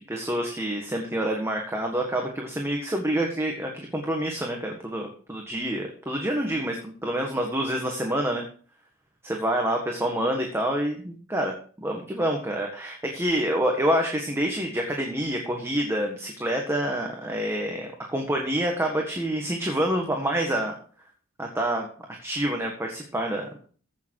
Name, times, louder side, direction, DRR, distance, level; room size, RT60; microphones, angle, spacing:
voice 1, 0.0-8.4 9.2-20.7 21.4-21.9 22.2-23.6, right 1 dB, 10° right, 1 dB, 1.6 m, -27 dB
15.0 x 6.9 x 4.7 m, 0.43 s
head